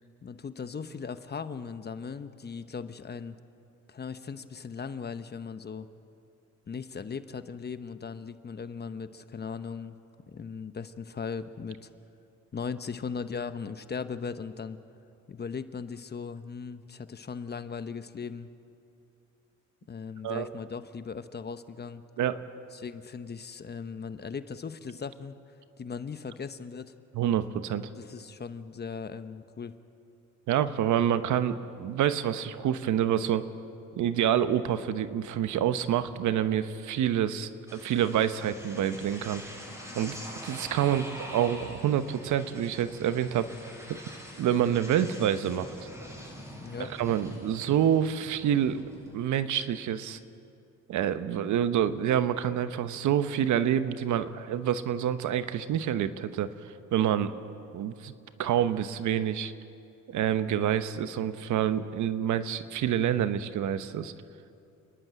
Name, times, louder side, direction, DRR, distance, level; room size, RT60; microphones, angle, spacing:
voice 1, 0.2-3.4 3.9-5.9 6.7-10.0 10.3-11.9 12.5-14.8 15.3-18.5 19.9-22.0 22.7-25.4 25.8-26.9 28.0-29.7 46.6-46.9, left 5 dB, 35° left, 11 dB, 1.0 m, -38 dB
voice 2, 27.1-27.9 30.5-33.5 34.0-39.4 39.9-40.2 40.4-43.5 43.9-44.0 44.4-45.7 47.0-48.8 49.1-50.2 50.9-57.3 57.7-58.1 58.4-59.5 60.1-64.1, right 10 dB, 75° right, 11 dB, 1.0 m, -27 dB
sound 1, 37.7-49.2, equal, 10° right, 7.4 m, -44 dB
29.5 x 11.0 x 9.0 m, 2.6 s
cardioid pair, 90°, 30 cm